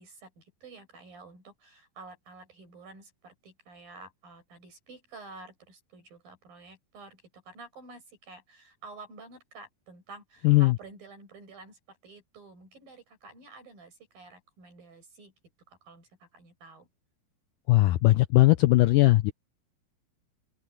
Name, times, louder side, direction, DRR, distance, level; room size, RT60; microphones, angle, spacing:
voice 1, 0.0-15.3 15.7-16.9, right 3 dB, 65° right, 9.5 m, -50 dB
voice 2, 10.4-10.7 17.7-19.3, left 18 dB, 80° left, 2.0 m, -19 dB
open air
omnidirectional pair, 4.4 m